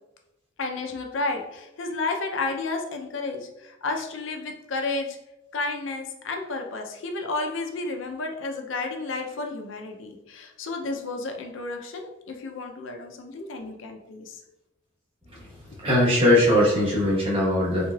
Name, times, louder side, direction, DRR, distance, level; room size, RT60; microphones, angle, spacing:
voice 1, 0.6-5.2 5.5-14.4, left 3 dB, 75° left, 3 dB, 0.5 m, -32 dB
voice 2, 15.8-17.9, left 1 dB, 30° right, -5 dB, 1.1 m, -20 dB
3.5 x 3.2 x 2.3 m, 0.93 s
head